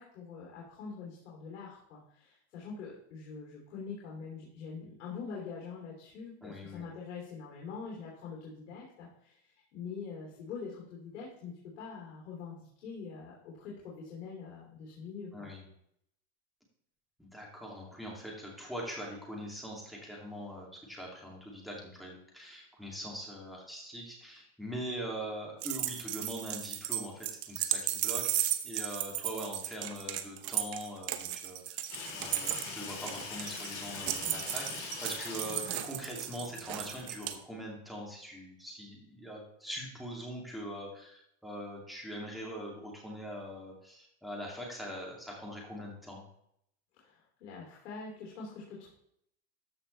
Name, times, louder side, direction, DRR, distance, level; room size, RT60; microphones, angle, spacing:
voice 1, 0.0-15.5 47.0-48.9, left 5 dB, 80° left, -3 dB, 3.1 m, -44 dB
voice 2, 6.4-6.9 15.3-15.7 17.2-31.8 32.1-46.3, equal, ahead, -2 dB, 2.7 m, -42 dB
sound 1, 25.6-37.3, right 13 dB, 40° right, 0.8 m, -35 dB
Water tap faucet / Sink (filling or washing), 31.9-37.3, left 4 dB, 55° left, 4.0 m, -43 dB
13.5 x 5.7 x 3.4 m, 0.73 s
supercardioid pair, 130°, 36 cm